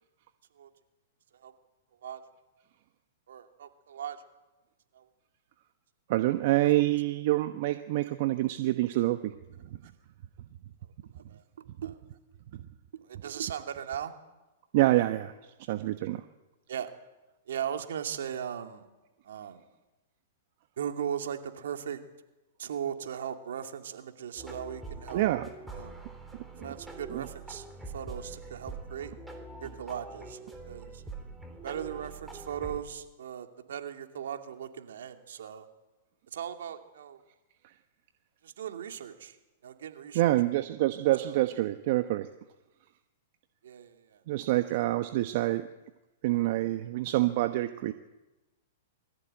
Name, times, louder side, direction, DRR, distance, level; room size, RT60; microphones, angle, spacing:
voice 1, 3.3-4.2 4.9-5.1 11.1-11.4 11.8-12.0 13.0-14.1 16.7-16.9 17.5-18.9 19.2-19.6 20.8-22.0 22.6-25.3 25.7-26.0 26.6-29.1 29.6-30.4 30.7-31.0 31.6-35.7 36.3-37.2 38.4-39.4 39.6-40.3 41.2-41.4 43.6-44.2 44.7-44.8, right 9 dB, 75° right, 5 dB, 2.5 m, -38 dB
voice 2, 6.1-9.3 12.5-12.6 14.7-15.3 15.7-16.2 25.1-25.5 27.1-27.2 40.1-42.3 44.3-45.7 46.2-47.9, right 16 dB, 55° right, 9 dB, 1.0 m, -26 dB
sound 1, 24.4-32.8, right 3 dB, 5° right, 3.5 m, -44 dB
22.5 x 14.5 x 9.0 m, 1.1 s
hypercardioid pair, 120°, 0 cm